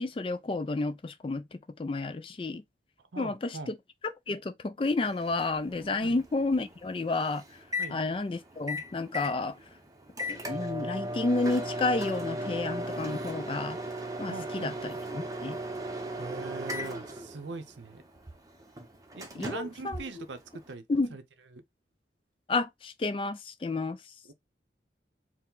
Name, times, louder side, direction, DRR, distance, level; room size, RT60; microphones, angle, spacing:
voice 1, 0.0-2.6 3.2-3.8 4.0-7.4 7.9-9.6 10.3-13.8 14.2-15.6 19.4-20.3 20.9-21.1 22.5-24.0, left 3 dB, 30° left, 0.3 m, -31 dB
voice 2, 3.1-3.7 6.0-6.2 7.8-8.0 14.3-14.7 16.2-18.0 19.1-20.8 21.1-21.2 21.5-21.6 24.3-24.4, right 3 dB, 85° right, 0.7 m, -41 dB
Microwave oven, 5.0-20.7, equal, 20° right, 0.7 m, -37 dB
4.6 x 2.1 x 3.8 m
head